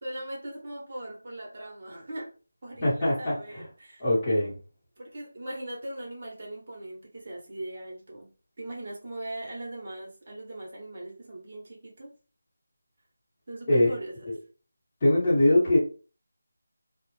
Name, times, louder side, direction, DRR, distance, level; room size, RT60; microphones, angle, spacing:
voice 1, 0.0-2.3 2.6-4.1 5.0-8.3 8.6-12.1 13.5-14.2, right 1 dB, 35° right, 0.9 m, -39 dB
voice 2, 2.8-3.6 4.0-4.5 13.7-13.9 14.3-14.4 15.0-15.8, left 1 dB, 20° left, 1.0 m, -22 dB
2.3 x 2.0 x 3.1 m
figure-of-eight pair, 175°, 0 cm